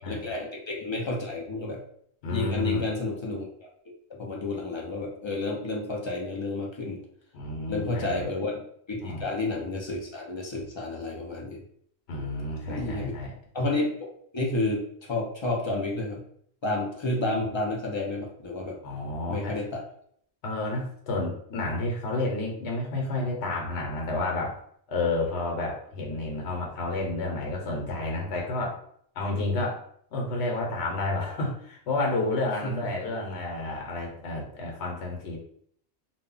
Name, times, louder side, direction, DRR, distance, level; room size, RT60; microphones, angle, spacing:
voice 1, 0.0-1.8 2.3-3.7 4.1-7.0 7.7-11.6 12.7-13.1 13.5-14.1 14.3-16.2 16.6-18.8 19.3-19.8 32.6-32.9, left 2 dB, 50° left, -1 dB, 0.3 m, -30 dB
voice 2, 2.2-2.8 7.3-8.3 9.0-9.3 12.1-13.3 18.8-19.6 20.4-24.6 24.9-28.8 29.1-29.8 30.1-35.4, left 2 dB, 80° left, 0 dB, 1.0 m, -30 dB
2.2 x 2.0 x 3.7 m, 0.65 s
omnidirectional pair, 1.1 m